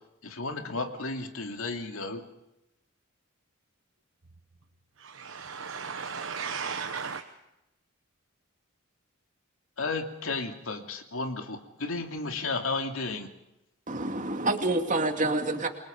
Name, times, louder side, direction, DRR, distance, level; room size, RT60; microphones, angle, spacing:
voice 1, 0.2-2.2 9.8-13.3, left 3 dB, 80° left, 5 dB, 2.7 m, -33 dB
voice 2, 5.0-7.2, right 6 dB, 75° right, 6 dB, 1.2 m, -35 dB
voice 3, 13.9-15.7, right 2 dB, 40° right, 4 dB, 2.4 m, -27 dB
28.5 x 23.5 x 5.3 m, 0.90 s
head